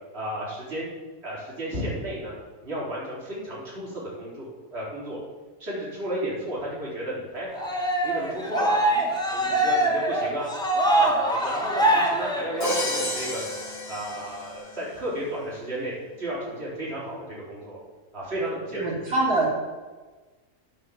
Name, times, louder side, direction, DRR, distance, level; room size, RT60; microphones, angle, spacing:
voice 1, 0.1-0.9 1.2-2.3 2.6-5.2 5.6-7.5 8.0-8.8 9.3-10.5 11.0-13.4 13.9-17.8 18.1-18.8, right 1 dB, 45° right, -6 dB, 4.5 m, -33 dB
Cheering, 7.5-13.0, right 1 dB, 5° left, 2.0 m, -24 dB
Crash cymbal, 12.6-14.8, left 1 dB, 40° left, 1.8 m, -30 dB
voice 2, 18.7-19.6, right 2 dB, 65° right, -7 dB, 4.2 m, -24 dB
15.5 x 6.0 x 7.4 m, 1.3 s
omnidirectional pair, 1.6 m